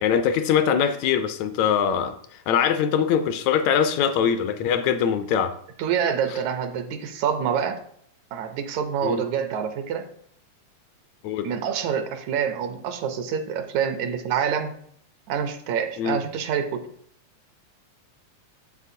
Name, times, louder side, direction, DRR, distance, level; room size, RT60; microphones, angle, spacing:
voice 1, 0.0-2.2 2.5-5.5 9.0-9.2 11.2-11.5 16.0-16.2, left 8 dB, 80° left, 9 dB, 1.7 m, -22 dB
voice 2, 5.8-7.8 8.3-10.1 11.4-14.7 15.3-16.8, right 7 dB, 80° right, 8 dB, 2.0 m, -26 dB
8.3 x 7.3 x 2.7 m, 0.65 s
omnidirectional pair, 3.3 m